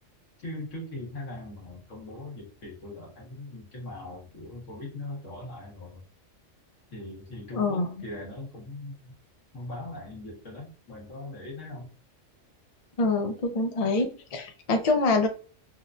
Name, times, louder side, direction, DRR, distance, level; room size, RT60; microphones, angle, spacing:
voice 1, 0.4-6.0 6.9-9.1 9.5-11.9, left 2 dB, 70° left, 1.6 m, -40 dB
voice 2, 7.5-7.9 13.0-15.3, left 3 dB, 50° left, 0.4 m, -25 dB
5.6 x 2.2 x 2.5 m
omnidirectional pair, 1.3 m